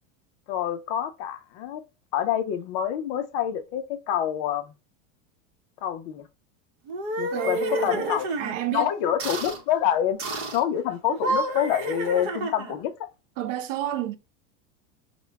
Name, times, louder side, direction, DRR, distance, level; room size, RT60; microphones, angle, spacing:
voice 1, 0.5-1.8 2.1-4.7 5.8-6.3 7.2-8.3 8.7-10.2 10.5-12.9, left 10 dB, 35° left, 0.5 m, -27 dB
sound 1, 6.9-8.6 9.2-9.6 10.2-10.6 11.1-12.8, right 1 dB, 45° right, 0.9 m, -30 dB
voice 2, 7.3-8.9 13.4-14.1, right 9 dB, 70° right, 0.6 m, -30 dB
5.0 x 2.2 x 3.3 m
supercardioid pair, 175°, 39 cm